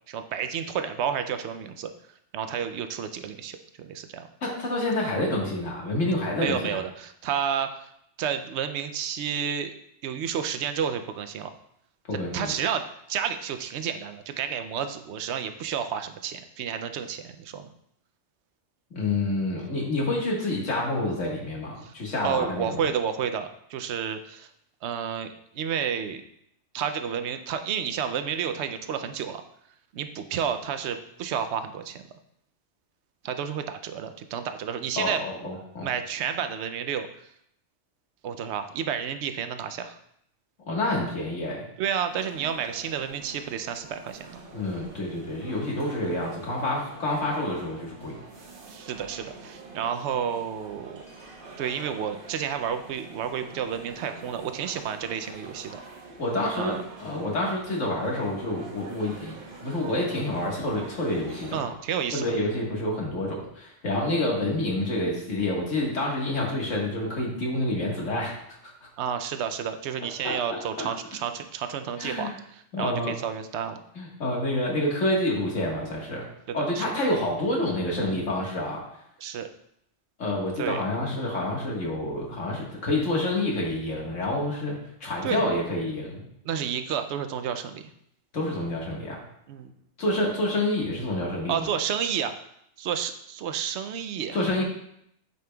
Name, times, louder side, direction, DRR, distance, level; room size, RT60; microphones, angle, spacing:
voice 1, 0.1-1.9 2.3-4.3 6.4-7.9 8.2-9.7 10.0-11.5 12.1-17.7 21.8-21.9 22.2-24.5 24.8-25.3 25.5-26.2 26.7-29.4 29.9-32.0 33.2-35.2 35.8-37.1 38.2-40.0 41.8-44.4 48.7-51.0 51.6-55.8 56.6-56.8 61.5-62.3 69.0-73.8 76.5-76.9 79.2-79.5 80.6-80.8 85.2-85.4 86.4-87.9 89.5-89.7 91.5-92.3 92.8-94.4, right 8 dB, 70° right, 9 dB, 0.8 m, -31 dB
voice 2, 4.4-6.8 12.1-12.5 18.9-22.8 35.0-35.9 40.7-41.7 44.5-48.2 56.2-61.7 62.1-68.4 70.2-70.9 72.0-72.4 72.7-73.1 74.0-76.2 76.5-78.8 80.2-86.2 88.3-89.2 90.0-91.7 94.3-94.6, left 1 dB, 85° left, -2 dB, 1.9 m, -28 dB
sound 1, 42.1-61.6, right 3 dB, 50° right, 1.0 m, -46 dB
9.2 x 5.3 x 2.3 m, 0.73 s
omnidirectional pair, 1.2 m